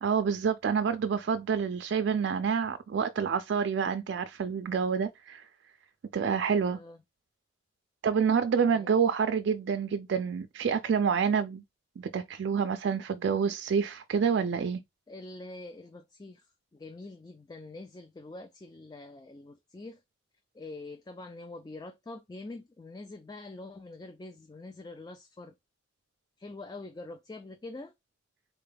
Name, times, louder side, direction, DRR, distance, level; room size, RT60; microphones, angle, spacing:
voice 1, 0.0-5.4 6.1-6.8 8.0-11.6 12.0-14.8, right 6 dB, 65° right, 0.3 m, -28 dB
voice 2, 8.7-9.0 15.1-20.0 20.5-25.5 26.4-27.9, left 2 dB, 20° left, 0.3 m, -45 dB
3.9 x 2.3 x 3.3 m
head